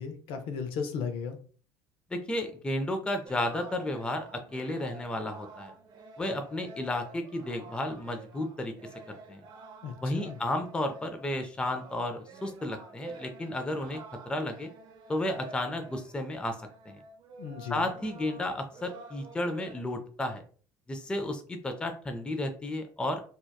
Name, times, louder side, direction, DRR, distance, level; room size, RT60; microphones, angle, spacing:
voice 1, 0.0-1.4 9.8-10.4 17.4-17.9, left 6 dB, 60° left, 6 dB, 0.5 m, -36 dB
voice 2, 2.1-5.7 6.2-8.7 9.3-9.4 10.0-14.0 14.3-14.7 15.1-17.0 17.7-20.4 20.9-23.2, left 1 dB, 10° left, 6 dB, 0.4 m, -33 dB
sound 1, 3.3-19.8, right 3 dB, 50° right, 0.5 m, -49 dB
2.7 x 2.2 x 2.2 m, 0.42 s
supercardioid pair, 95°, 10 cm